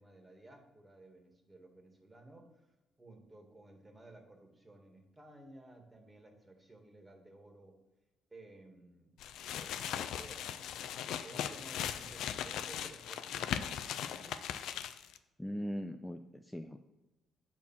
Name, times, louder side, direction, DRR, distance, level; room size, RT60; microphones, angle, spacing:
voice 1, 0.0-2.7 3.0-7.8 8.3-9.2 9.5-10.7 11.2-14.4, right 2 dB, 20° right, 3 dB, 1.8 m, -56 dB
sound 1, 9.2-15.2, left 9 dB, 80° left, 0.5 m, -39 dB
voice 2, 15.4-16.8, equal, 5° left, 6 dB, 0.5 m, -40 dB
8.3 x 4.5 x 7.2 m, 1.0 s
cardioid pair, 90°, 0 cm